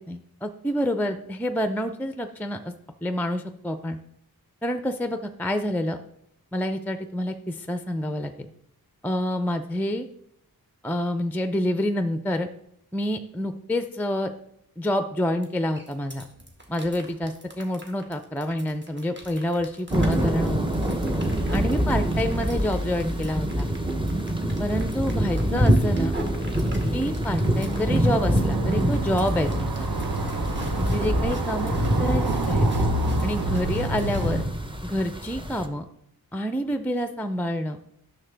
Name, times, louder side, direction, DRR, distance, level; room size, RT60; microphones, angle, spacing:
voice 1, 0.0-2.7 3.0-4.0 4.6-6.0 6.5-8.5 9.0-10.1 10.8-12.5 12.9-14.3 14.8-16.3 16.7-20.8 21.5-23.7 24.6-26.1 26.9-29.9 30.9-31.7 32.0-32.7 33.2-34.5 34.8-35.9 36.3-37.8, left 1 dB, 5° left, 9 dB, 0.4 m, -28 dB
sound 1, 15.4-15.5 15.8-34.4, equal, 30° right, 1.6 m, -34 dB
sound 2, 19.9-35.7, equal, 15° right, 0.8 m, -26 dB
sound 3, 27.4-34.4, right 2 dB, 70° right, 1.0 m, -30 dB
10.0 x 6.6 x 3.4 m, 0.74 s
wide cardioid pair, 70°, 38 cm